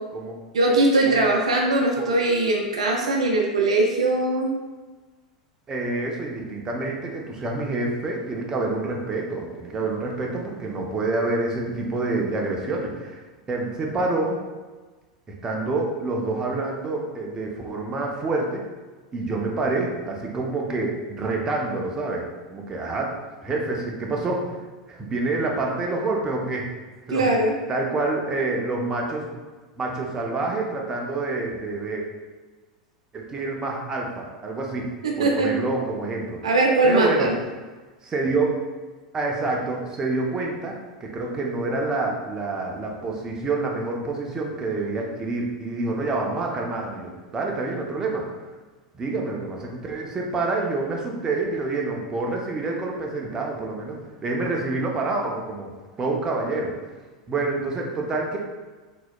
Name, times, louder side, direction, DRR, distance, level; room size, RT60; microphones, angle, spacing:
voice 1, 0.5-4.5 27.1-27.5 35.0-35.5 36.4-37.3, right 2 dB, 70° right, 0 dB, 0.4 m, -20 dB
voice 2, 5.7-13.2 13.5-14.4 15.4-18.6 19.1-24.6 24.9-26.7 27.1-27.3 27.7-29.3 29.8-32.0 33.1-34.9 35.2-36.4 36.8-37.3 38.0-38.5 39.1-48.3 48.9-55.7 56.0-56.7 57.3-58.4, right 3 dB, 20° right, -1 dB, 0.6 m, -27 dB
3.9 x 2.9 x 2.2 m, 1.3 s
figure-of-eight pair, 85°, 3 cm